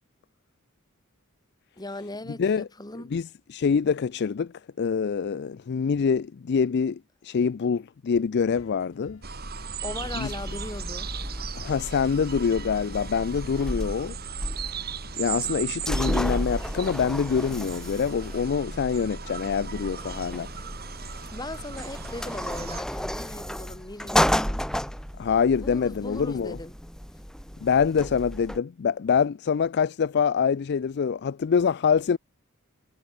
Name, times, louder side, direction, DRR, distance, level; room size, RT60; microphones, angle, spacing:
voice 1, 1.8-3.2 9.8-11.1 21.3-24.6 25.6-26.7, left 2 dB, 20° left, 2.5 m, -38 dB
voice 2, 3.1-9.2 10.2-10.3 11.6-14.2 15.2-20.5 21.1-21.2 25.2-26.6 27.6-32.2, left 6 dB, 55° left, 0.4 m, -25 dB
sound 1, 8.5-24.5, left 1 dB, 70° left, 3.6 m, -53 dB
sound 2, 9.2-22.8, right 5 dB, 50° right, 4.7 m, -37 dB
sound 3, 9.8-28.6, equal, 5° left, 1.3 m, -33 dB
head